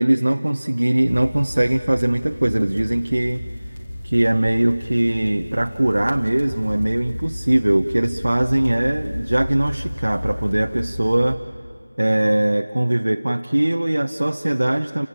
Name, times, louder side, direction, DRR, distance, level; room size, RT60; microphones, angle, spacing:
voice 1, 0.0-3.4 4.0-11.4 12.0-15.1, right 1 dB, 60° right, 5 dB, 0.8 m, -20 dB
sound 1, 1.0-11.4, left 1 dB, 20° left, 2.0 m, -33 dB
29.5 x 17.0 x 8.9 m, 2.2 s
figure-of-eight pair, 175°, 0 cm